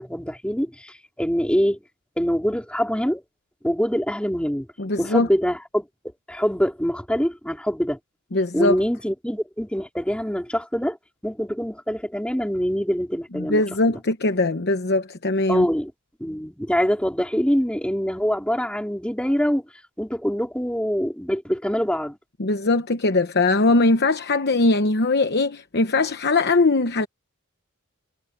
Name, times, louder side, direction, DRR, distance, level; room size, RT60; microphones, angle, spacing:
voice 1, 0.0-1.8 2.2-3.2 3.6-4.7 5.0-5.9 6.3-8.0 8.5-11.0 11.2-13.6 13.9-14.0 15.5-15.9 16.2-19.7 20.0-22.2, equal, 5° left, 4.0 m, -24 dB
voice 2, 4.8-5.3 8.3-8.8 13.4-15.6 22.4-27.1, left 2 dB, 50° left, 1.0 m, -21 dB
head